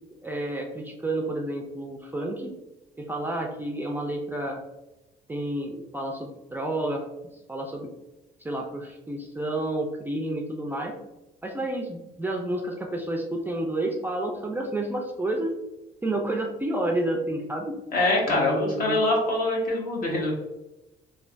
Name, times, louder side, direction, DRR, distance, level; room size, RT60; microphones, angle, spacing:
voice 1, 0.2-2.5 3.0-4.6 5.3-7.1 7.5-7.9 8.4-10.9 11.4-15.5 16.0-17.7 18.3-19.0, right 1 dB, 10° right, 0 dB, 0.4 m, -30 dB
voice 2, 17.9-20.3, left 2 dB, 55° left, -2 dB, 1.1 m, -24 dB
3.2 x 2.2 x 2.4 m, 0.99 s
cardioid pair, 110°, 17 cm